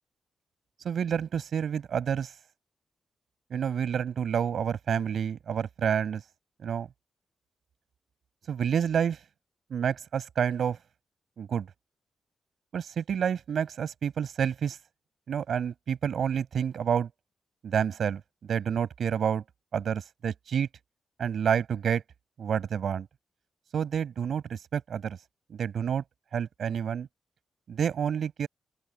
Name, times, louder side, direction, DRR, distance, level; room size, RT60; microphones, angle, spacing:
voice 1, 0.8-2.3 3.5-6.2 6.6-6.9 8.5-9.2 9.7-10.8 11.4-11.7 12.7-14.8 15.3-17.1 17.6-19.4 19.7-20.7 21.2-22.0 22.4-23.1 23.7-25.2 25.5-26.0 26.3-27.1 27.7-28.5, right 8 dB, 70° right, 6.0 m, -29 dB
wide cardioid pair, 115°, 0 cm